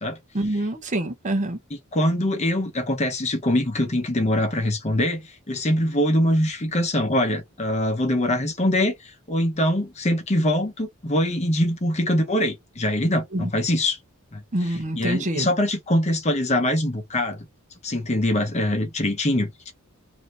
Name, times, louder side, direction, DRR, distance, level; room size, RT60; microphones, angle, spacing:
voice 1, 0.3-1.6 13.3-13.5 14.5-15.5, right 1 dB, 35° right, 0.8 m, -26 dB
voice 2, 1.9-14.0 14.3-14.4 15.0-17.5 17.8-19.7, left 1 dB, 30° left, 0.8 m, -23 dB
3.2 x 2.7 x 4.0 m
head